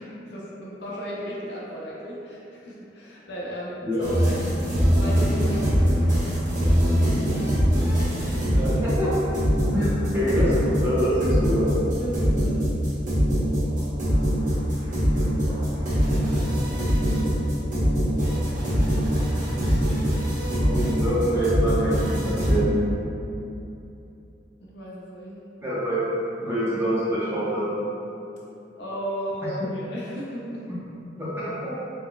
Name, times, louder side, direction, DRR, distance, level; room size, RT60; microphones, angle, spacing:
voice 1, 0.0-4.5 5.0-6.5 12.0-12.7 24.6-25.4 28.8-30.7, equal, 60° left, -5 dB, 0.5 m, -35 dB
voice 2, 3.8-4.2 8.6-9.1 9.7-11.7 15.5-16.0 20.6-22.7 25.6-26.0 26.4-27.8 29.6-29.7 31.2-31.7, equal, 15° right, -11 dB, 0.8 m, -26 dB
sound 1, 4.0-22.5, equal, 45° right, 0.8 m, -23 dB
3.8 x 2.3 x 2.2 m, 2.8 s
head